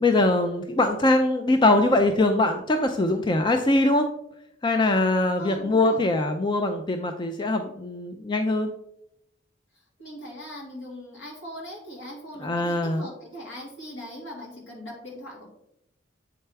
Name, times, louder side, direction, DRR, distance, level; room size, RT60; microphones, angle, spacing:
voice 1, 0.0-4.1 4.6-8.7 12.4-13.1, left 2 dB, 25° left, 6 dB, 0.4 m, -22 dB
voice 2, 5.4-6.0 10.0-15.5, equal, 75° left, -1 dB, 2.2 m, -40 dB
7.5 x 4.5 x 3.3 m, 0.77 s
head